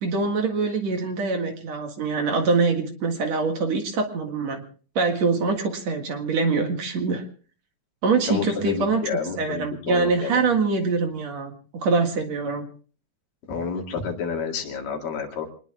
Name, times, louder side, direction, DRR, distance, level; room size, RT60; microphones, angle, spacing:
voice 1, 0.0-4.6 5.0-7.2 8.0-9.1 9.4-12.6, right 4 dB, 55° right, 4 dB, 2.8 m, -24 dB
voice 2, 8.3-10.4 13.5-15.5, left 5 dB, 80° left, 2 dB, 4.0 m, -29 dB
27.0 x 20.5 x 2.4 m, 0.41 s
omnidirectional pair, 3.9 m